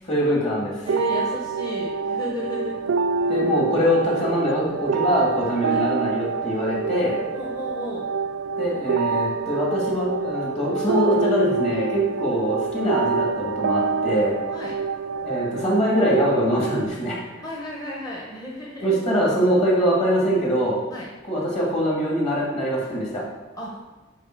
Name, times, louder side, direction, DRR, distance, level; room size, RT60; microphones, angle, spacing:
voice 1, 0.1-0.9 3.3-7.2 8.6-14.4 15.2-17.2 18.8-20.8 21.3-23.2, equal, 35° left, -4 dB, 2.4 m, -23 dB
voice 2, 0.8-2.8 5.7-5.8 7.3-8.1 14.5-14.8 17.4-19.0 20.9-21.1 23.5-23.8, left 1 dB, 20° left, -3 dB, 1.0 m, -33 dB
sound 1, 0.9-16.9, right 4 dB, 80° right, 0.3 m, -26 dB
9.2 x 4.4 x 4.6 m, 1.2 s
head